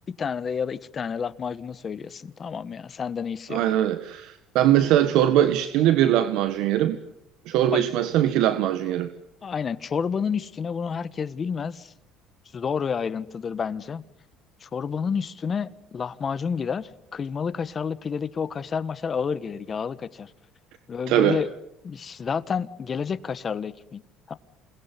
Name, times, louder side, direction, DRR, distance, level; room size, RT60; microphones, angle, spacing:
voice 1, 0.2-3.6 7.7-7.8 9.4-11.9 12.5-14.0 14.6-20.3 20.9-21.5 21.8-24.0 24.3-24.4, left 6 dB, 30° left, 1.3 m, -30 dB
voice 2, 3.5-7.0 7.5-9.1 21.1-21.4, right 12 dB, 70° right, 1.6 m, -21 dB
28.5 x 21.0 x 9.8 m
cardioid pair, 120°, 0 cm